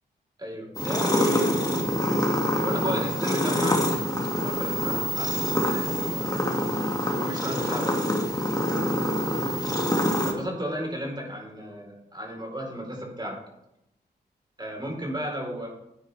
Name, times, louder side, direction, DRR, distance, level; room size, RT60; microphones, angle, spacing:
voice 1, 0.4-1.6 2.2-6.4 7.1-8.0 10.2-13.4 14.6-15.7, equal, 25° right, -1 dB, 4.3 m, -34 dB
sound 1, 0.7-10.3, equal, 20° left, 2.4 m, -25 dB
11.5 x 9.1 x 3.5 m, 0.84 s
cardioid pair, 50°, 18 cm